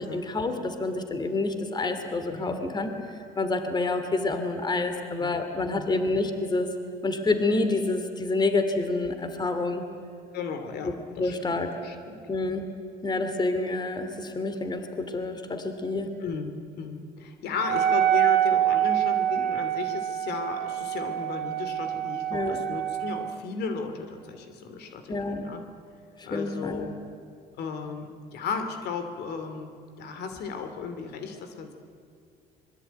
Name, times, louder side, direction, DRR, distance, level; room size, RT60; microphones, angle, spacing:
voice 1, 0.1-2.9 3.4-6.7 7.0-9.8 10.8-11.7 12.3-12.6 13.0-16.1 22.3-22.6 25.1-25.4 26.2-26.8, left 2 dB, 25° left, 8 dB, 2.7 m, -28 dB
voice 2, 2.3-2.7 5.2-5.3 5.7-6.0 10.3-12.2 16.2-25.6 26.2-27.0 27.6-29.7 30.0-31.7, left 5 dB, 75° left, 7 dB, 2.8 m, -35 dB
Wind instrument woodwind instrument, 17.6-23.4, right 11 dB, 70° right, 1.2 m, -26 dB
26.0 x 22.0 x 9.2 m, 2.5 s
cardioid pair, 110°, 17 cm